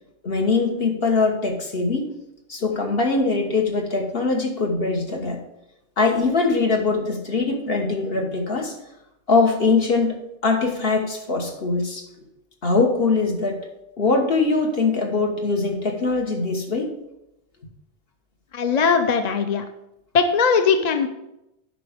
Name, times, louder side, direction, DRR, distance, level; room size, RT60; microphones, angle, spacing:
voice 1, 0.2-2.1 2.5-5.4 6.0-8.7 9.3-12.1 12.6-13.6 14.0-16.9, left 3 dB, 65° left, 2 dB, 1.6 m, -22 dB
voice 2, 18.5-19.6 20.1-21.1, left 5 dB, 50° left, 7 dB, 0.7 m, -19 dB
8.9 x 5.8 x 5.1 m, 0.88 s
omnidirectional pair, 1.0 m